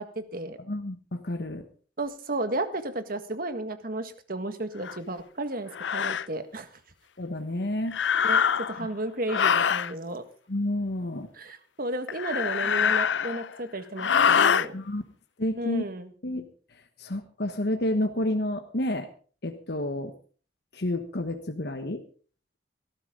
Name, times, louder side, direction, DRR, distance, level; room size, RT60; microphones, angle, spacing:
voice 1, 0.0-0.6 2.0-6.7 8.2-8.4 8.7-10.2 11.3-14.8 15.6-16.1, right 2 dB, 55° right, 9 dB, 1.8 m, -33 dB
voice 2, 0.7-1.6 7.2-8.0 10.5-11.3 14.7-15.0 15.4-15.8 16.2-16.4 17.0-19.1 19.4-20.1 20.7-22.0, left 1 dB, 65° left, 6 dB, 1.3 m, -30 dB
sound 1, 4.8-5.0 5.7-6.3 7.9-8.8 9.3-9.9 12.1-13.5 14.0-14.7, left 7 dB, 90° left, 0.6 m, -24 dB
18.0 x 13.5 x 3.9 m, 0.41 s
head